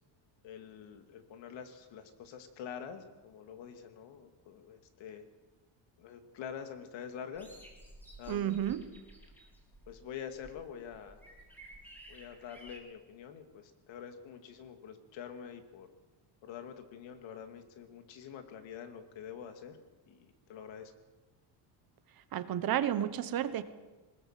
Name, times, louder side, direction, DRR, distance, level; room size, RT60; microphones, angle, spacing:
voice 1, 0.4-5.2 6.0-7.5 8.2-8.7 9.9-11.2 12.1-15.9 16.4-19.8 20.1-20.9, left 8 dB, 65° left, 8 dB, 2.7 m, -46 dB
sound 1, 7.3-12.8, right 1 dB, 5° left, 4.0 m, -54 dB
voice 2, 8.3-8.8 22.3-23.6, right 11 dB, 45° right, 12 dB, 1.3 m, -31 dB
21.0 x 20.5 x 7.6 m, 1.2 s
cardioid pair, 160°, 48 cm